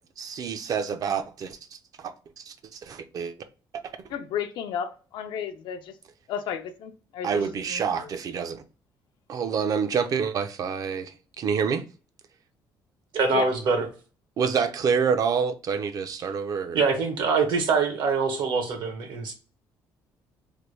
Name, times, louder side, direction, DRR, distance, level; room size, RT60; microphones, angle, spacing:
voice 1, 0.2-1.6 2.0-3.3 7.2-8.6 9.3-11.8 14.4-16.8, right 6 dB, 50° right, 0.5 m, -27 dB
voice 2, 4.1-5.9 6.3-7.4 7.7-8.1 13.3-13.5, left 8 dB, 75° left, 0.5 m, -33 dB
voice 3, 13.1-13.9 16.7-19.3, right 4 dB, 70° right, 0.9 m, -24 dB
3.3 x 2.2 x 3.1 m
cardioid pair, 120°, 8 cm